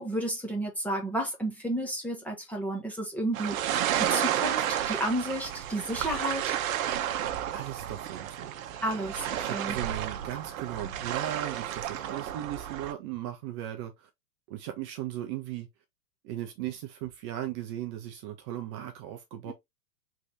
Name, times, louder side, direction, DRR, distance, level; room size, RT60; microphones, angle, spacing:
voice 1, 0.0-6.4 8.8-9.8 19.4-19.5, right 1 dB, 5° left, 0.9 m, -32 dB
sound 1, 3.3-12.9, right 11 dB, 60° right, 0.8 m, -31 dB
voice 2, 7.5-8.7 9.4-13.9 14.5-15.7 16.2-19.5, right 12 dB, 20° right, 0.4 m, -37 dB
4.7 x 3.3 x 2.7 m
hypercardioid pair, 125°, 47 cm